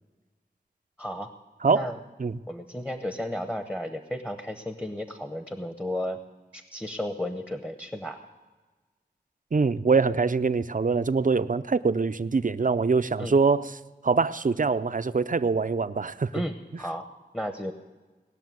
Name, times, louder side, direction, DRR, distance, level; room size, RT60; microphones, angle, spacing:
voice 1, 1.0-1.3 1.7-2.0 2.5-6.2 6.5-8.2 13.2-13.3 16.3-17.0 17.3-17.7, left 1 dB, 10° left, 7 dB, 0.9 m, -33 dB
voice 2, 9.5-13.7 14.0-16.4, right 4 dB, 50° right, 13 dB, 0.5 m, -24 dB
19.5 x 6.7 x 9.3 m, 1.3 s
wide cardioid pair, 55°, 17 cm